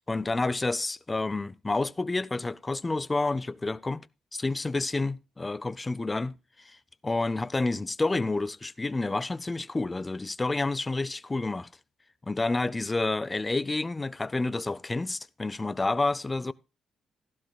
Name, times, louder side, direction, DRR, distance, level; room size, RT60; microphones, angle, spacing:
voice 1, 0.1-4.1 4.3-6.8 7.0-11.7 12.2-16.5, left 3 dB, 20° left, 0.5 m, -29 dB
15.0 x 12.0 x 2.3 m
cardioid pair, 90°, 0 cm